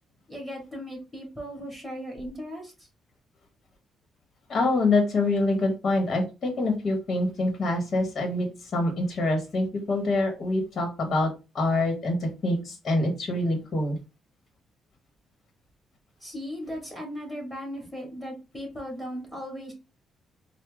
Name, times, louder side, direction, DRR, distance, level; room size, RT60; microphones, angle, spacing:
voice 1, 0.3-2.9 16.2-19.7, equal, ahead, 0 dB, 2.5 m, -37 dB
voice 2, 4.5-11.3 11.5-14.0, left 2 dB, 50° left, 3 dB, 1.3 m, -25 dB
4.4 x 2.3 x 3.6 m, 0.29 s
cardioid pair, 90°, 0 cm